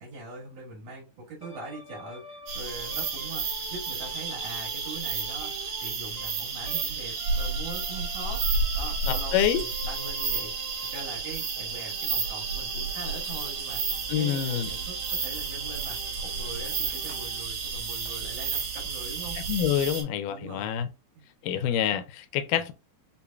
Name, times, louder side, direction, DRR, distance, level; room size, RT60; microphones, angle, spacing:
voice 1, 0.0-8.4 8.8-9.4 9.8-19.4 19.8-20.0 20.3-20.7 21.1-21.2, right 3 dB, 85° right, 3.1 m, -42 dB
sound 1, 1.4-6.9 7.1-17.4, equal, 45° left, 0.4 m, -48 dB
sound 2, 2.5-20.0, right 4 dB, 70° right, 2.6 m, -31 dB
voice 2, 9.1-9.6 14.1-14.7 19.5-20.9 21.4-22.7, left 10 dB, 85° left, 2.1 m, -27 dB
sound 3, 13.9-20.1, right 13 dB, 50° right, 1.7 m, -46 dB
6.6 x 2.5 x 2.3 m
omnidirectional pair, 3.7 m